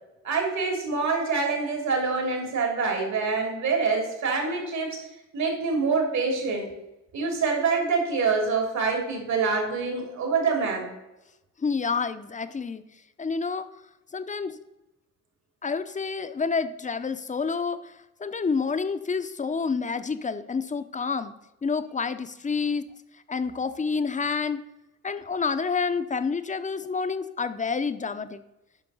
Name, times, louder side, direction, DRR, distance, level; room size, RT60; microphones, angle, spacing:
voice 1, 0.2-5.1 5.3-6.7 7.1-10.9, right 4 dB, 65° right, 2 dB, 2.9 m, -26 dB
voice 2, 11.6-12.8 13.2-13.7 14.1-14.6 15.6-21.3 21.6-22.9 23.3-24.6 25.0-28.4, left 5 dB, 25° left, 11 dB, 0.7 m, -28 dB
9.9 x 5.9 x 5.5 m, 0.93 s
cardioid pair, 90°, 30 cm